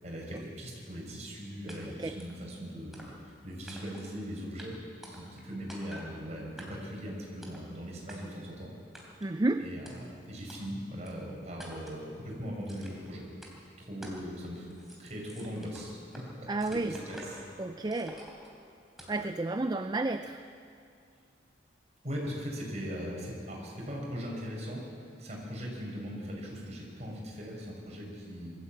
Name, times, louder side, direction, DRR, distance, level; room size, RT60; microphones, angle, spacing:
voice 1, 0.0-4.7 5.1-8.7 9.6-13.2 13.8-14.7 15.0-17.4 22.0-24.8 25.2-28.6, equal, 40° right, -2 dB, 5.5 m, -40 dB
sound 1, 1.7-1.8 2.2-2.4 2.9-3.4 3.7-4.2 4.6-4.7 5.0-5.4 5.7-6.1 6.6-7.0 7.4-7.7 8.1-8.2 8.9-9.3 9.9-10.0 10.5-10.6 11.0-11.1 11.6-12.0 12.7-13.1 13.4-13.5 14.0-14.3 14.6-16.3 16.6-17.5 17.9-18.5 19.0-19.3, equal, ahead, 3.5 m, -48 dB
voice 2, 9.2-9.7 16.5-16.9 17.6-18.2 19.1-20.4, right 2 dB, 20° right, 8 dB, 0.4 m, -31 dB
22.0 x 13.5 x 8.7 m, 2.5 s
head